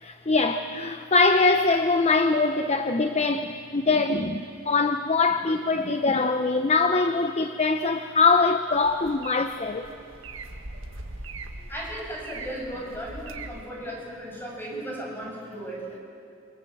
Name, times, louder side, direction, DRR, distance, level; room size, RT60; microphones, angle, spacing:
voice 1, 0.0-9.9, left 3 dB, 30° left, 8 dB, 0.8 m, -23 dB
sound 1, 8.7-13.7, right 3 dB, 65° right, 1.8 m, -41 dB
voice 2, 11.7-15.9, right 1 dB, 10° left, -2 dB, 7.3 m, -36 dB
28.5 x 25.0 x 7.9 m, 2.6 s
head